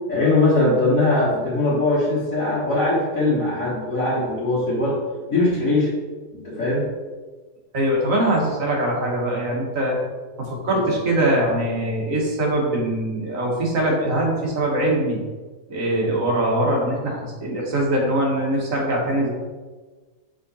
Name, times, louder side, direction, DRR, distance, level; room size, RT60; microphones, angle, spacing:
voice 1, 0.1-5.0 5.3-5.9 6.3-6.9 10.8-10.9, left 2 dB, 60° left, -10 dB, 1.9 m, -21 dB
voice 2, 7.7-10.0 10.4-15.2 15.7-19.3, right 1 dB, 60° right, -2 dB, 1.7 m, -22 dB
6.4 x 3.8 x 4.1 m, 1.3 s
omnidirectional pair, 1.6 m